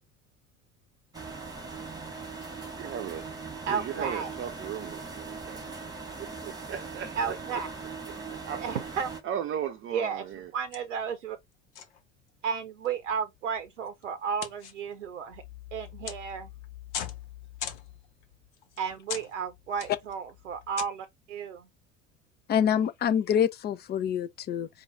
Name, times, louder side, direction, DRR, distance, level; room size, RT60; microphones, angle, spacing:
sound 1, 1.1-9.2, right 4 dB, 10° right, 1.6 m, -40 dB
voice 1, 2.4-5.8 6.2-7.6 8.3-8.6 9.2-10.5, right 9 dB, 35° right, 0.7 m, -37 dB
voice 2, 3.7-4.3 7.2-7.7 8.6-9.1 9.9-10.2 10.5-11.4 12.4-15.4 15.7-16.5 18.8-21.7, right 6 dB, 75° right, 0.7 m, -33 dB
sound 2, 9.6-10.0 10.3-10.5 10.7-11.4 11.8-12.3 12.9-20.8, left 9 dB, 65° left, 1.0 m, -41 dB
voice 3, 22.5-24.7, left 8 dB, 25° left, 0.5 m, -26 dB
4.7 x 2.4 x 4.0 m
figure-of-eight pair, 65°, 37 cm